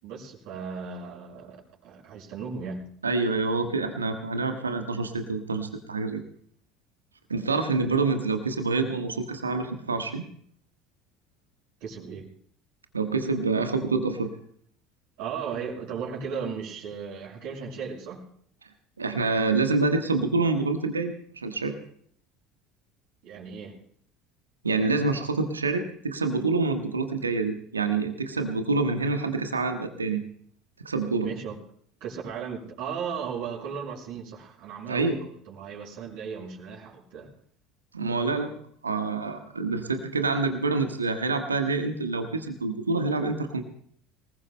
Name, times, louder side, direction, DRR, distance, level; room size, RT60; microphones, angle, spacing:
voice 1, 0.0-2.8 11.8-12.3 15.2-18.2 23.2-23.7 31.2-31.6 32.0-37.3, right 6 dB, 60° right, -4 dB, 5.6 m, -36 dB
voice 2, 3.0-6.2 7.3-10.2 12.9-14.3 19.0-21.7 24.6-30.2 30.8-31.3 34.9-35.2 37.9-38.5 38.8-43.6, right 3 dB, 80° right, 6 dB, 1.3 m, -27 dB
26.0 x 19.5 x 2.2 m, 0.63 s
figure-of-eight pair, 65°, 0 cm